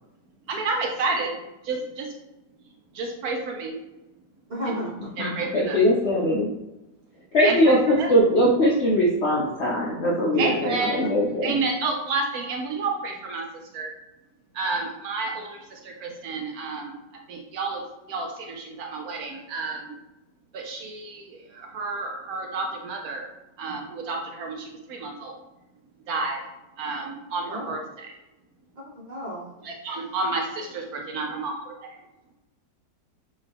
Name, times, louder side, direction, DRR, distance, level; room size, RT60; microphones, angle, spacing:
voice 1, 0.5-1.3 1.6-2.1 2.9-3.8 4.7-4.8 5.2-5.8 7.4-8.1 10.4-13.9 14.5-17.0 17.3-17.8 18.1-19.9 20.5-23.3 23.6-25.4 26.1-26.4 26.8-28.1 29.6-32.0, right 3 dB, 70° right, 2 dB, 1.0 m, -30 dB
voice 2, 4.5-5.1 10.3-10.5 10.8-10.9 27.5-27.7 28.8-29.5, right 1 dB, 30° right, -6 dB, 0.9 m, -32 dB
voice 3, 5.2-6.5 7.3-11.5, equal, 65° left, -4 dB, 0.6 m, -21 dB
5.0 x 2.7 x 3.4 m, 0.98 s
omnidirectional pair, 1.8 m